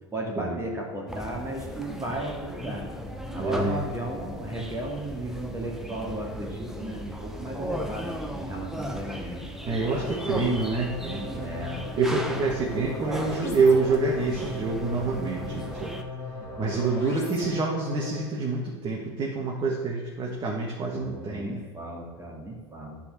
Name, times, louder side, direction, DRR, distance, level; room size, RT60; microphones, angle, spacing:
voice 1, 0.1-2.8 3.3-9.4 9.7-10.1 11.3-11.9 20.9-23.0, right 1 dB, 20° right, -1 dB, 2.3 m, -35 dB
sound 1, 1.1-16.0, equal, 5° right, 1.1 m, -36 dB
voice 2, 3.4-3.7 9.6-11.2 12.0-15.9 16.6-21.6, right 3 dB, 35° right, -2 dB, 1.7 m, -27 dB
sound 2, 9.6-18.4, left 3 dB, 20° left, 2.6 m, -38 dB
9.9 x 4.4 x 6.7 m, 1.4 s
hypercardioid pair, 85°, 14 cm